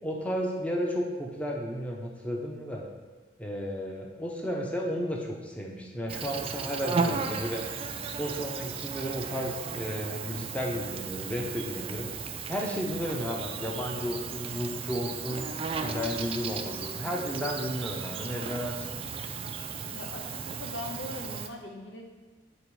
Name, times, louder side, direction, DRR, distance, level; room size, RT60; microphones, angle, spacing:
voice 1, 0.0-2.9 3.4-7.6 8.0-12.1 12.5-15.5 15.8-19.0, equal, 5° left, -1 dB, 0.6 m, -33 dB
Insect, 6.1-21.5, right 5 dB, 30° right, 0.3 m, -35 dB
voice 2, 19.9-22.0, left 1 dB, 80° left, 1 dB, 0.9 m, -40 dB
8.6 x 3.0 x 4.7 m, 1.3 s
head